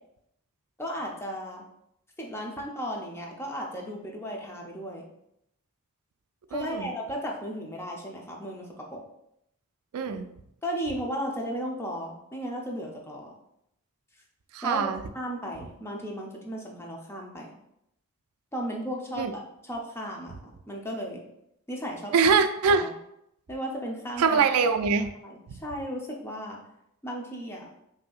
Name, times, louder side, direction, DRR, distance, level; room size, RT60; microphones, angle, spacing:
voice 1, 0.8-1.7 2.2-5.1 6.5-9.0 10.6-13.3 14.6-14.8 15.1-17.5 18.5-21.2 21.7-22.3 22.7-22.9 23.5-24.5 25.2-26.6 27.0-27.7, equal, 10° left, -1 dB, 0.6 m, -35 dB
voice 2, 6.5-6.9 9.9-10.3 14.5-15.0 19.2-19.3 22.1-22.9 24.2-25.1 25.5-25.6, right 5 dB, 70° right, 9 dB, 0.3 m, -23 dB
5.5 x 2.7 x 2.4 m, 0.78 s
head